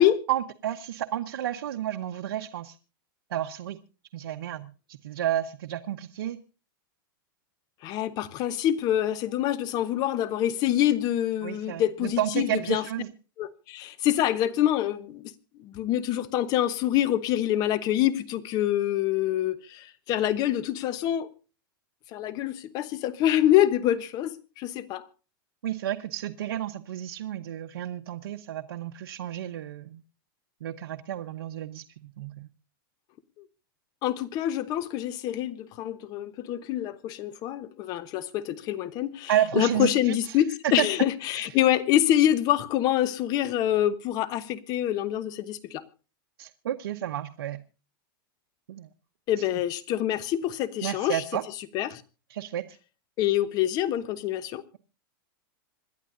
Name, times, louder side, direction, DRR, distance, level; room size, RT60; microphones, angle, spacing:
voice 1, 0.3-2.8 3.3-3.8 4.1-6.4 11.4-13.1 25.6-30.0 30.6-32.5 39.3-40.2 40.6-40.9 46.4-47.6 48.7-48.9 49.4-49.5 50.8-51.4 52.3-52.6, right 11 dB, 90° right, 0.9 m, -31 dB
voice 2, 7.8-12.8 13.4-15.3 15.6-21.3 22.1-25.1 34.0-39.3 39.6-45.8 49.3-51.2 51.7-52.0 53.2-54.6, left 12 dB, 35° left, 1.0 m, -26 dB
26.5 x 11.5 x 2.6 m
supercardioid pair, 155°, 12 cm